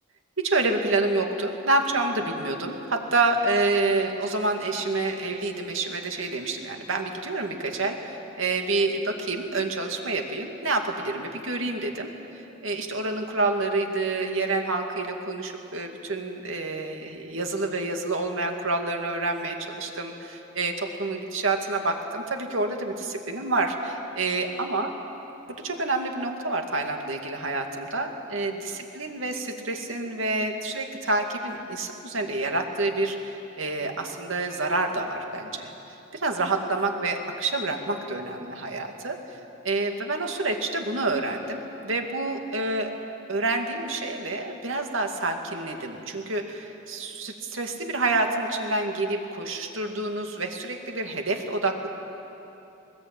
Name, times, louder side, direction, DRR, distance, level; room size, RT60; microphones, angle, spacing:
voice 1, 0.4-24.9 25.6-35.7 36.1-39.2 39.6-42.9 43.3-51.9, right 2 dB, 80° right, 3 dB, 2.4 m, -28 dB
21.5 x 20.5 x 8.9 m, 2.9 s
head